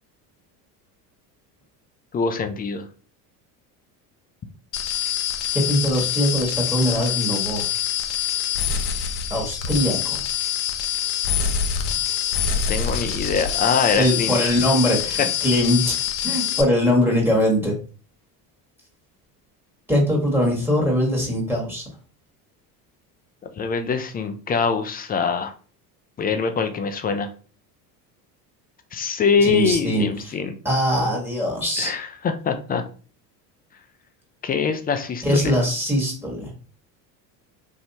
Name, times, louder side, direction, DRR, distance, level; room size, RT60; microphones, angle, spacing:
voice 1, 2.1-2.9 12.7-14.4 23.4-25.5 26.2-27.3 28.9-30.6 31.8-32.8 34.4-35.6, left 5 dB, 20° left, 7 dB, 0.4 m, -24 dB
sound 1, 4.7-16.6, left 9 dB, 65° left, 0.8 m, -25 dB
voice 2, 5.5-7.7 9.3-10.2 13.9-17.7 19.9-21.8 29.4-30.3 30.6-31.9 35.2-36.5, equal, 5° right, -2 dB, 1.4 m, -22 dB
3.1 x 2.7 x 2.8 m, 0.39 s
hypercardioid pair, 80°, 48 cm